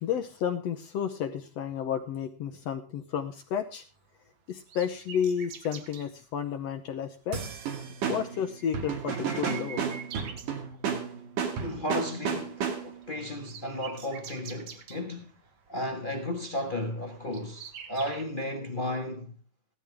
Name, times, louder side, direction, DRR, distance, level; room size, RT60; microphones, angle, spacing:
voice 1, 0.0-3.9 4.5-7.4 8.1-9.9, left 8 dB, 70° left, 1.7 m, -32 dB
sound 1, 3.5-6.1 7.0-7.3 7.6-7.7 8.0-11.2 11.5-11.8 12.1-18.2, right 6 dB, 60° right, 2.4 m, -47 dB
sound 2, 7.3-13.1, right 7 dB, 80° right, 3.6 m, -33 dB
voice 2, 11.6-15.3 15.7-19.4, left 1 dB, 45° left, 0.6 m, -34 dB
15.5 x 12.5 x 3.5 m
omnidirectional pair, 3.6 m